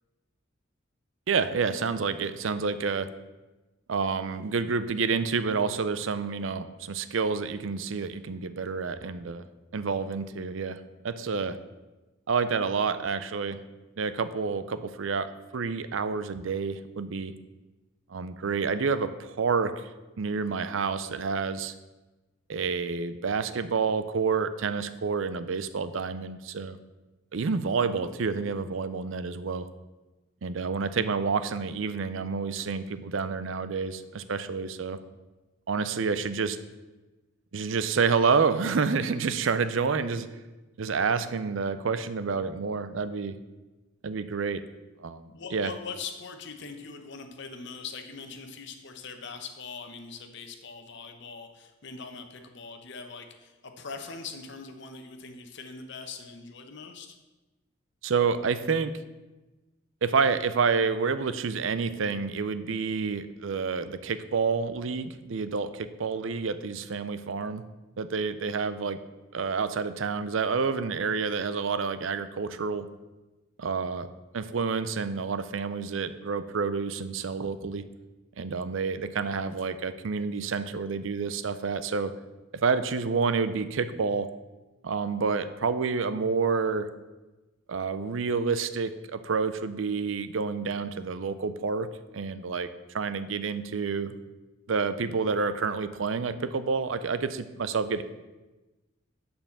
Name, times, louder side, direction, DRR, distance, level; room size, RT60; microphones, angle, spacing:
voice 1, 1.3-3.1 3.9-9.4 9.7-11.6 12.3-13.6 14.0-17.3 18.1-19.9 20.2-21.7 22.5-26.8 27.3-29.7 30.4-35.0 35.7-36.6 37.5-40.3 40.8-43.4 44.0-44.6 45.0-45.7 58.0-58.9 60.0-67.6 68.0-69.0 69.3-72.9 73.6-74.1 74.3-77.9 78.4-82.1 82.6-84.3 84.8-86.9 87.7-91.9 92.1-92.7 92.9-94.1 94.7-98.0, right 5 dB, 65° right, 12 dB, 0.5 m, -29 dB
voice 2, 45.3-57.2, left 5 dB, 60° left, 6 dB, 1.0 m, -42 dB
6.8 x 5.6 x 7.2 m, 1.1 s
head